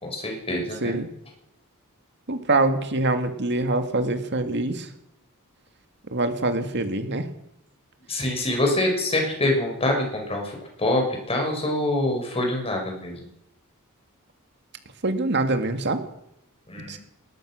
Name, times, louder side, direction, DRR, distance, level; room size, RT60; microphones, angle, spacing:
voice 1, 0.0-1.0 8.1-13.2 16.7-17.0, left 1 dB, 25° left, 1 dB, 6.3 m, -25 dB
voice 2, 2.3-4.9 6.1-7.3 15.0-16.0 16.9-17.0, right 2 dB, 55° right, 7 dB, 2.0 m, -24 dB
21.0 x 20.5 x 6.4 m, 0.81 s
head